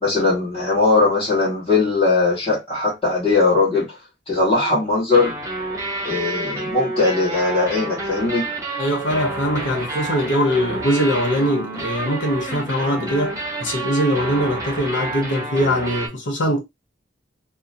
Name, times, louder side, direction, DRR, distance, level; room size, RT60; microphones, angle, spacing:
voice 1, 0.0-4.0 4.3-5.4 6.0-8.4, left 3 dB, 30° left, 1.2 m, -19 dB
sound 1, 5.1-16.1, right 2 dB, 20° right, 0.7 m, -29 dB
voice 2, 8.8-16.6, equal, 85° left, 1.0 m, -22 dB
2.7 x 2.1 x 2.6 m
head